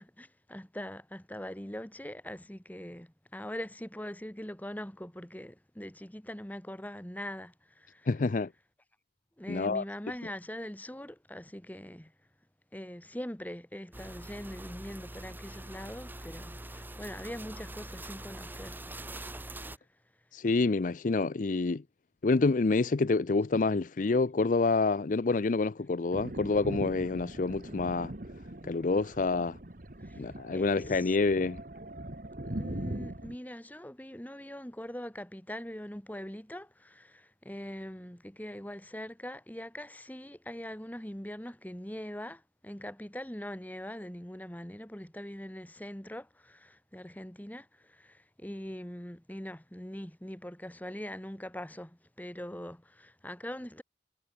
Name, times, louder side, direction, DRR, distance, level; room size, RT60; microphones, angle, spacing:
voice 1, 0.0-8.5 9.4-12.1 12.7-18.8 19.5-19.6 30.0-31.2 32.4-53.8, equal, 10° left, 1.8 m, -42 dB
voice 2, 8.1-8.5 9.5-9.8 20.3-21.8 22.2-28.1 28.7-29.5 30.2-31.6, left 3 dB, 45° left, 0.5 m, -27 dB
sound 1, 13.9-19.8, right 1 dB, 10° right, 2.6 m, -44 dB
Thunder, 26.1-33.4, right 1 dB, 50° right, 1.8 m, -41 dB
head